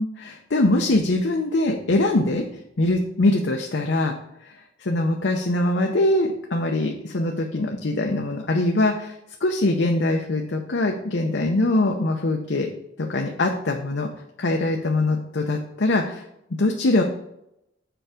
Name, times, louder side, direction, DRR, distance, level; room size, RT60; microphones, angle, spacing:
voice 1, 0.0-2.4 2.8-4.1 4.4-4.5 4.8-9.1 9.4-12.7 13.0-14.1 14.4-16.2 16.6-17.0, left 2 dB, 80° left, 2 dB, 0.7 m, -22 dB
7.0 x 4.5 x 5.0 m, 0.82 s
head